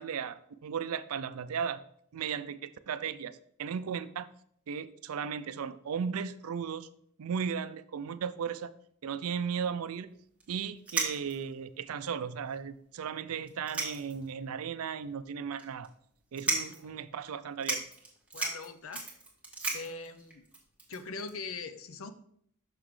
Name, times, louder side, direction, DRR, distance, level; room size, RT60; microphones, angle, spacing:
voice 1, 0.0-1.8 2.1-4.3 4.7-6.9 7.2-8.7 9.0-10.1 10.5-15.9 16.3-17.8, right 7 dB, 75° right, 14 dB, 0.4 m, -36 dB
sound 1, 10.4-10.5 10.9-11.5 12.2-12.3 12.5-12.6 13.5-14.3 14.7-14.8 15.6-15.9 16.3-16.9 17.3-17.4 17.6-21.3, right 3 dB, 5° right, 1.3 m, -35 dB
voice 2, 16.7-17.0 18.3-19.0 19.7-20.4 20.9-22.1, left 4 dB, 65° left, 10 dB, 0.6 m, -41 dB
6.4 x 5.9 x 3.2 m, 0.66 s
head